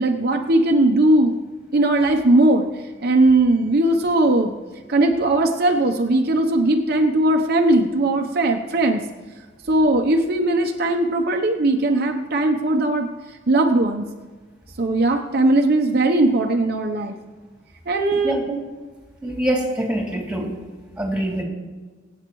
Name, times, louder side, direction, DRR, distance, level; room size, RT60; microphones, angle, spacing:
voice 1, 0.0-1.3 1.7-2.7 3.0-4.5 4.9-9.1 9.7-13.1 13.5-14.1 14.8-17.1 17.9-18.4, right 2 dB, 55° right, 3 dB, 0.8 m, -19 dB
voice 2, 19.2-20.5 21.0-21.4, right 1 dB, 5° right, -2 dB, 2.7 m, -24 dB
24.5 x 8.7 x 3.1 m, 1.4 s
head